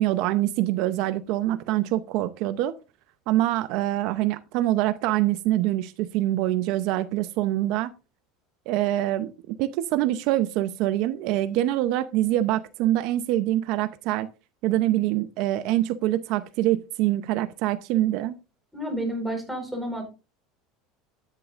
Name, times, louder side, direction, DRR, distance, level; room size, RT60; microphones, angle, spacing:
voice 1, 0.0-2.7 3.3-7.9 8.7-14.3 14.6-18.4, right 14 dB, 60° right, 12 dB, 0.7 m, -25 dB
voice 2, 18.7-20.1, right 1 dB, ahead, 1 dB, 4.6 m, -30 dB
13.0 x 10.5 x 2.5 m, 0.30 s
supercardioid pair, 140°, 0 cm